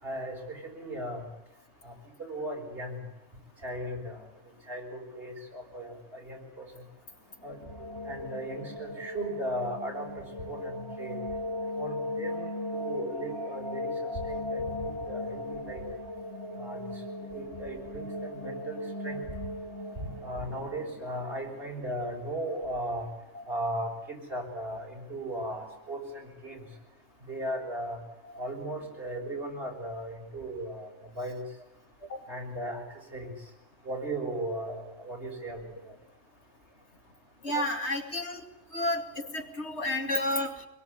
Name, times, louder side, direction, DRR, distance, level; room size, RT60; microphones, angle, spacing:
voice 1, 0.0-1.3 1.8-1.9 2.2-3.0 3.6-4.2 4.7-6.7 7.4-7.6 8.1-11.2 11.8-15.8 16.6-16.8 17.3-19.2 20.0-23.1 23.5-26.6 27.3-28.0 28.4-31.4 32.3-32.8 33.1-33.3 33.8-36.0, right 1 dB, 55° right, 0 dB, 7.0 m, -37 dB
sound 1, 7.3-22.2, left 1 dB, 20° left, 3.5 m, -38 dB
voice 2, 37.4-38.4 38.7-40.6, left 1 dB, 75° left, 3 dB, 2.8 m, -31 dB
24.0 x 22.5 x 9.9 m, 0.83 s
omnidirectional pair, 1.2 m